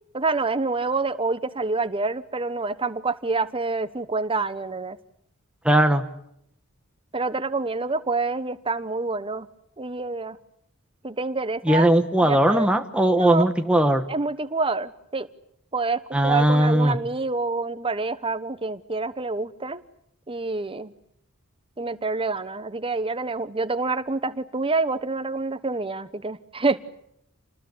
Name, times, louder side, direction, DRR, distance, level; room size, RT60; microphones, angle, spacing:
voice 1, 0.1-5.0 7.1-9.5 9.8-10.4 11.0-11.9 12.2-12.7 13.2-13.5 14.1-15.3 15.7-19.8 20.3-20.9 21.8-26.8, right 3 dB, 25° right, 13 dB, 1.2 m, -27 dB
voice 2, 5.6-6.0 11.6-14.0 16.1-17.0, right 1 dB, 5° right, 5 dB, 1.3 m, -19 dB
29.0 x 20.0 x 9.6 m, 0.74 s
head